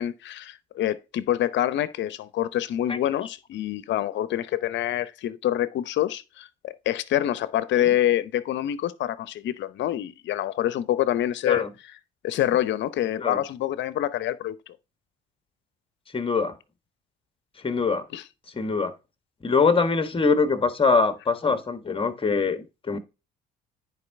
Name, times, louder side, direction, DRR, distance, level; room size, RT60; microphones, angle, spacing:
voice 1, 0.0-11.7 12.2-14.6 18.1-18.2, left 12 dB, 65° left, 0.9 m, -26 dB
voice 2, 16.1-16.5 17.6-18.0 18.5-18.9 19.4-23.0, left 4 dB, 25° left, 1.5 m, -23 dB
9.7 x 4.8 x 3.5 m
supercardioid pair, 70°, 21 cm